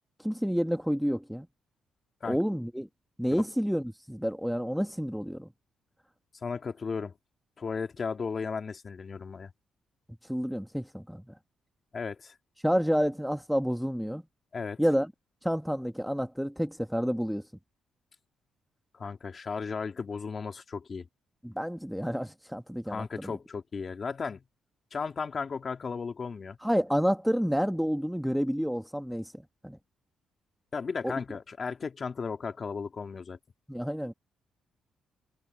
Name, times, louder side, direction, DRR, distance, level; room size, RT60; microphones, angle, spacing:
voice 1, 0.2-1.5 2.2-2.9 3.2-5.5 10.3-11.2 12.6-14.2 14.8-15.1 15.4-17.4 21.4-23.4 26.6-29.3 29.6-29.8 31.0-31.1 33.7-34.1, equal, ahead, 1.4 m, -29 dB
voice 2, 6.4-7.1 7.6-9.5 11.9-12.3 14.5-14.8 18.9-21.1 22.9-24.4 24.9-26.6 30.7-33.4, left 5 dB, 40° left, 2.5 m, -35 dB
cardioid pair, 90°, 0 cm